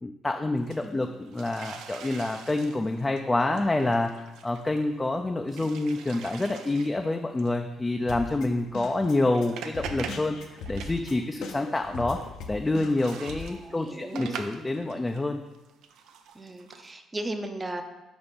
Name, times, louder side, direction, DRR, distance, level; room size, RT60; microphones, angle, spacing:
voice 1, 0.0-12.2 12.5-15.4, left 2 dB, 20° left, 4 dB, 0.4 m, -27 dB
sound 1, 0.6-5.1 5.5-7.1 7.4-7.5 8.1-8.3 9.0-11.1 11.4-15.2 15.5-16.9, right 7 dB, 70° right, 0.4 m, -43 dB
Drum kit, 8.1-13.4, left 3 dB, 70° left, 0.6 m, -40 dB
voice 2, 13.5-14.4 16.3-17.8, right 1 dB, 25° right, 6 dB, 0.7 m, -36 dB
4.7 x 4.1 x 5.2 m, 1.1 s
hypercardioid pair, 50°, 0 cm